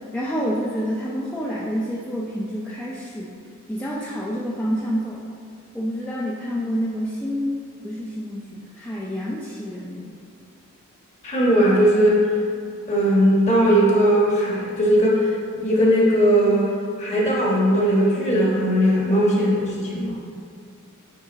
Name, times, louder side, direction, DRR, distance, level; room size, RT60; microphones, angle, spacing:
voice 1, 0.0-3.4 3.7-5.2 5.7-10.2, equal, 5° left, -6 dB, 0.5 m, -28 dB
voice 2, 11.2-12.2 12.9-16.7 17.0-20.2, equal, 30° left, -4 dB, 1.5 m, -18 dB
8.9 x 3.5 x 4.0 m, 2.4 s
head